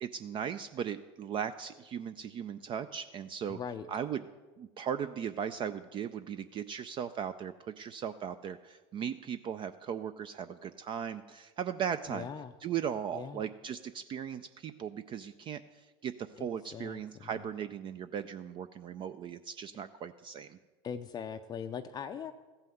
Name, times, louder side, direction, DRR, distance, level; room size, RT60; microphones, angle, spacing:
voice 1, 0.0-3.6 3.9-4.2 4.6-12.3 12.6-20.6, right 8 dB, 35° right, 12 dB, 0.4 m, -38 dB
voice 2, 3.5-3.9 12.1-12.5 13.1-13.4 16.4-17.3 20.8-22.3, left 7 dB, 25° left, 7 dB, 0.5 m, -41 dB
14.5 x 5.6 x 7.7 m, 1.3 s
supercardioid pair, 110°, 15 cm